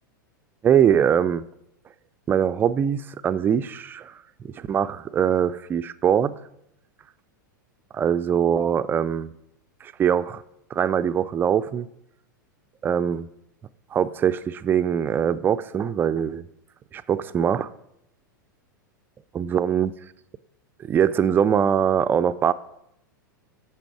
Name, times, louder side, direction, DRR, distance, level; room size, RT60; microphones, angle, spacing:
voice 1, 0.6-1.4 2.3-4.1 4.4-6.4 7.9-9.3 9.8-10.4 10.7-11.9 12.8-13.3 13.9-16.4 16.9-17.7 19.3-19.9 20.8-22.5, right 8 dB, 20° right, 0.3 m, -22 dB
8.8 x 7.2 x 4.6 m
figure-of-eight pair, 95°, 11 cm